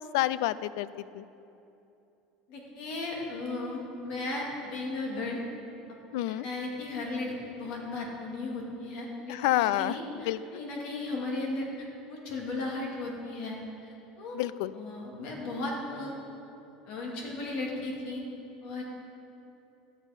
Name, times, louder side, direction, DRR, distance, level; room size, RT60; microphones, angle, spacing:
voice 1, 0.1-0.9 1.1-1.2 6.1-6.4 9.3-10.0 10.3-10.4 14.3-14.7, left 15 dB, 80° left, 17 dB, 0.3 m, -28 dB
voice 2, 2.5-5.4 6.3-13.6 13.8-14.4 14.7-16.1 16.9-18.2 18.6-18.8, left 2 dB, 60° left, -1 dB, 2.4 m, -36 dB
13.5 x 7.3 x 5.2 m, 2.8 s
supercardioid pair, 140°, 2 cm